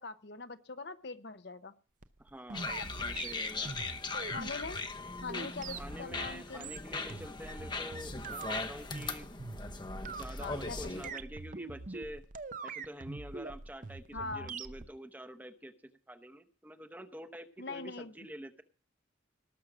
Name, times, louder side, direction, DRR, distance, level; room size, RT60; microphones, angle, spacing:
voice 1, 0.0-1.7 4.3-4.8 5.2-6.8 10.4-11.2 14.1-14.5 17.6-18.1, left 3 dB, 60° left, 11 dB, 0.8 m, -42 dB
sound 1, 2.0-14.9, right 4 dB, 40° right, 0.7 m, -43 dB
voice 2, 2.2-3.7 5.7-9.3 10.2-12.2 12.6-18.6, equal, 10° right, 8 dB, 0.9 m, -47 dB
sound 2, 2.5-11.1, left 3 dB, 25° left, 0.8 m, -39 dB
19.0 x 6.4 x 6.1 m, 0.40 s
head